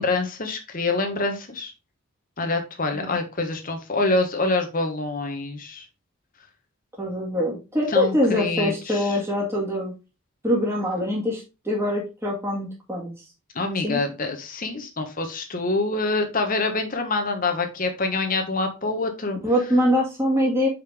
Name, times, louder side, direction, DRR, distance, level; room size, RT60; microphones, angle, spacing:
voice 1, 0.0-1.7 2.4-5.8 7.9-9.2 13.5-19.4, left 3 dB, 40° left, 6 dB, 1.1 m, -26 dB
voice 2, 7.0-9.9 10.4-13.1 13.8-14.0 19.4-20.7, left 1 dB, 10° right, -3 dB, 1.9 m, -23 dB
6.5 x 5.2 x 3.5 m, 0.29 s
head